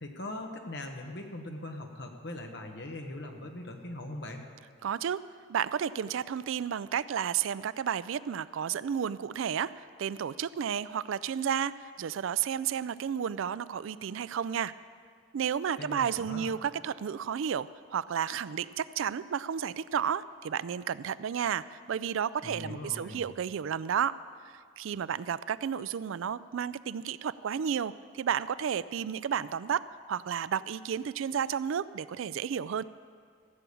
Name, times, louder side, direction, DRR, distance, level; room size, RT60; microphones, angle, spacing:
voice 1, 0.0-4.4 15.8-16.5 22.4-23.2, left 1 dB, 55° left, 3 dB, 1.4 m, -40 dB
voice 2, 4.8-5.2 5.5-14.7 15.3-24.2 24.5-32.8, right 8 dB, 70° right, 17 dB, 0.3 m, -32 dB
15.0 x 7.0 x 8.5 m, 2.2 s
head